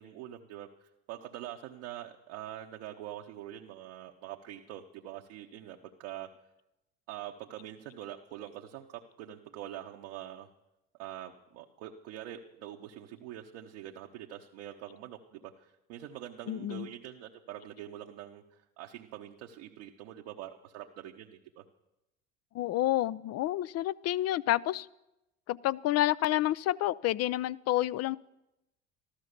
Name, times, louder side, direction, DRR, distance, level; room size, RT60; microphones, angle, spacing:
voice 1, 0.0-6.3 7.1-10.5 11.0-21.6, right 12 dB, 70° right, 1 dB, 1.1 m, -44 dB
voice 2, 16.5-16.9 22.5-24.9 25.5-28.2, left 14 dB, 45° left, 20 dB, 0.6 m, -29 dB
14.0 x 13.0 x 6.7 m, 0.91 s
hypercardioid pair, 75°, 35 cm